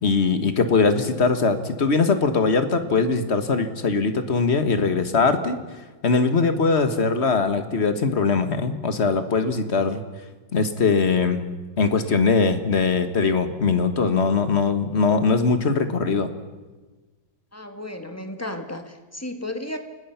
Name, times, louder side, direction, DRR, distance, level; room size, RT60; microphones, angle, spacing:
voice 1, 0.0-5.6 6.0-10.0 10.5-11.4 11.8-16.3, left 4 dB, 40° left, 9 dB, 1.7 m, -21 dB
voice 2, 17.5-19.8, left 1 dB, 10° left, 6 dB, 1.5 m, -33 dB
29.0 x 19.5 x 5.8 m, 1.2 s
omnidirectional pair, 2.0 m